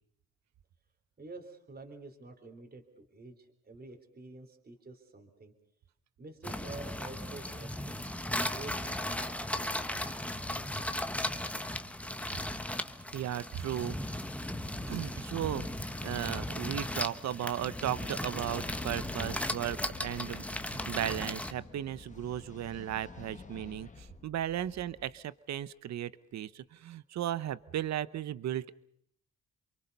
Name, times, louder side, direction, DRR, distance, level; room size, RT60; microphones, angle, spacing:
voice 1, 1.2-5.5 6.2-8.1 8.4-10.1 14.6-14.9, right 3 dB, 30° right, 5 dB, 3.6 m, -49 dB
sound 1, 6.4-21.5, left 1 dB, 5° left, 1.3 m, -36 dB
voice 2, 13.1-14.0 14.9-15.6 16.0-28.8, right 11 dB, 60° right, 17 dB, 0.9 m, -36 dB
sound 2, 18.5-25.2, left 3 dB, 25° left, 1.6 m, -48 dB
28.5 x 23.5 x 5.4 m, 0.68 s
cardioid pair, 90°, 30 cm